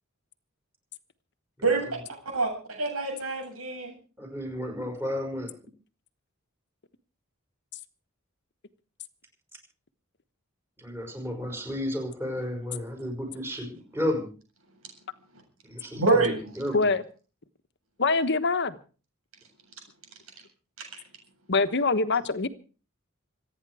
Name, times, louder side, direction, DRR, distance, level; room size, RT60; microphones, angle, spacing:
voice 1, 2.3-3.9 15.9-16.4 20.8-20.9, right 3 dB, 85° right, 7.8 m, -26 dB
voice 2, 4.2-5.5 10.8-14.3 15.7-16.9, left 1 dB, 10° right, 5.8 m, -32 dB
voice 3, 18.0-18.8 21.5-22.5, left 3 dB, 55° left, 1.2 m, -24 dB
26.5 x 9.8 x 4.9 m
head